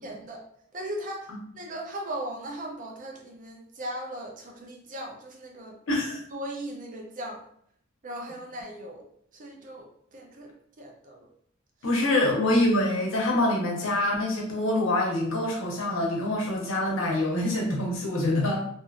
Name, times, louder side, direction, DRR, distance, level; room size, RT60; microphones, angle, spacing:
voice 1, 0.0-0.4 0.7-5.8 6.3-7.4 8.0-9.1 9.3-10.5 10.8-11.3, right 1 dB, 40° right, 1 dB, 0.6 m, -38 dB
voice 2, 5.9-6.2 11.8-18.6, left 1 dB, 90° left, -2 dB, 0.8 m, -25 dB
2.7 x 2.6 x 2.4 m, 0.67 s
head